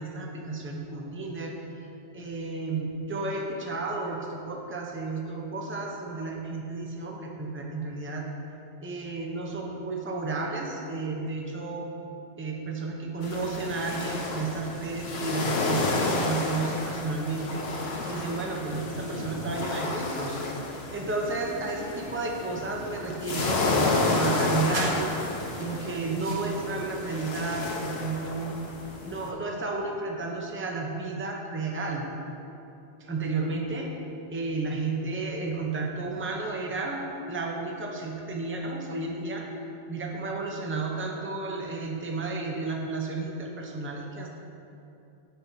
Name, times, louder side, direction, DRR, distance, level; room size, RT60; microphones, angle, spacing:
voice 1, 0.0-1.6 2.1-8.3 8.8-11.9 12.4-20.4 20.9-25.1 25.6-28.6 29.0-32.0 33.0-33.9 34.3-39.5 39.9-44.3, right 3 dB, 15° right, -1 dB, 0.6 m, -32 dB
sound 1, 13.2-29.3, left 3 dB, 60° left, 1.1 m, -31 dB
sound 2, 22.4-27.5, right 1 dB, 60° right, 1.5 m, -43 dB
13.0 x 5.6 x 2.8 m, 2.8 s
omnidirectional pair, 1.2 m